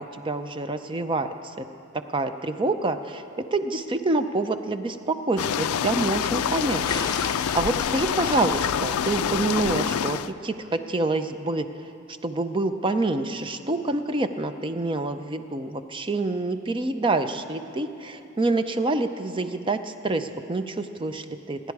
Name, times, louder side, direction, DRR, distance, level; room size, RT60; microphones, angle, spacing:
voice 1, 0.0-1.5 2.1-3.2 3.5-6.8 7.2-11.7 12.2-21.6, right 2 dB, 25° right, 9 dB, 0.5 m, -27 dB
sound 1, 5.4-10.3, left 8 dB, 85° left, 0.4 m, -26 dB
sound 2, 6.8-8.4, left 3 dB, 20° left, 0.8 m, -36 dB
26.5 x 10.5 x 4.8 m, 2.8 s
head